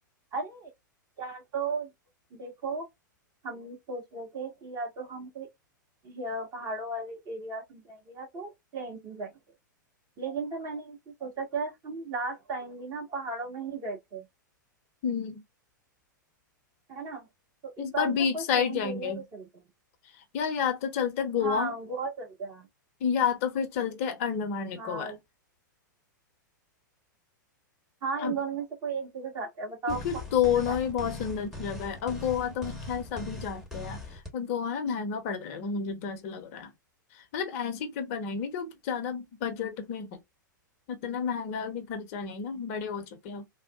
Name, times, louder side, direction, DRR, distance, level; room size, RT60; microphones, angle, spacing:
voice 1, 0.3-0.7 1.2-1.9 2.3-2.9 3.4-5.5 6.0-9.3 10.2-14.2 16.9-17.3 17.6-19.7 21.4-22.7 24.7-25.2 28.0-30.2 30.5-30.8, right 4 dB, 30° right, 1.5 m, -36 dB
voice 2, 15.0-15.4 17.8-19.2 20.3-21.7 23.0-25.2 28.2-28.4 29.9-36.7 37.1-40.2 40.9-43.4, left 7 dB, 45° left, 0.7 m, -30 dB
sound 1, 29.9-34.3, left 2 dB, 5° right, 1.1 m, -40 dB
3.5 x 2.1 x 2.3 m
figure-of-eight pair, 100°, 11 cm